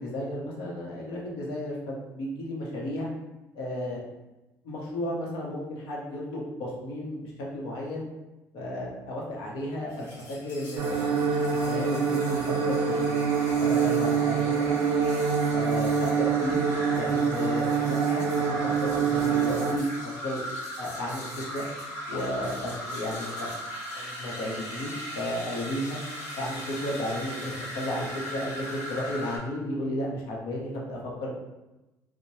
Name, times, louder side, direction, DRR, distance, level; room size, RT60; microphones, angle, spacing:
voice 1, 0.0-3.1 3.5-4.0 4.6-8.1 8.5-10.8 11.1-13.1 13.6-14.8 15.5-16.6 16.9-20.4 20.8-21.7 22.1-23.6 23.9-26.0 26.4-31.3, left 1 dB, 85° left, -3 dB, 0.8 m, -33 dB
sound 1, 9.9-29.4, equal, 65° left, 1.1 m, -39 dB
sound 2, 10.8-19.8, right 6 dB, 70° right, 0.4 m, -25 dB
3.0 x 2.1 x 2.7 m, 1.0 s
cardioid pair, 115°, 7 cm